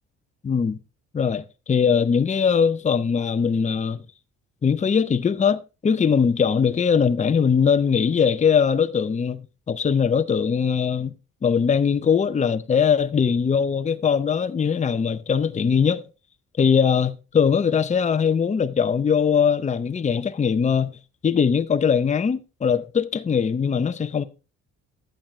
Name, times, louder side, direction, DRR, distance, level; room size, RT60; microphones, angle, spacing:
voice 1, 0.4-0.8 1.1-4.0 4.6-11.1 11.4-16.0 16.6-21.0 21.2-24.2, left 6 dB, 25° left, 0.6 m, -21 dB
11.5 x 8.8 x 3.1 m
cardioid pair, 90°, 30 cm